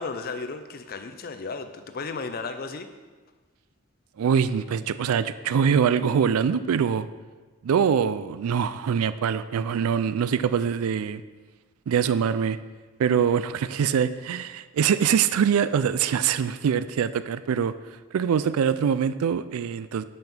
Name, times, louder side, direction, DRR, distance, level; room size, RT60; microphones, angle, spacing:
voice 1, 0.0-2.9, left 4 dB, 45° left, 9 dB, 0.5 m, -34 dB
voice 2, 4.2-7.1 7.6-11.2 11.9-12.6 13.0-17.7 18.1-20.0, right 7 dB, 80° right, 14 dB, 0.3 m, -23 dB
5.7 x 5.2 x 6.0 m, 1.3 s
head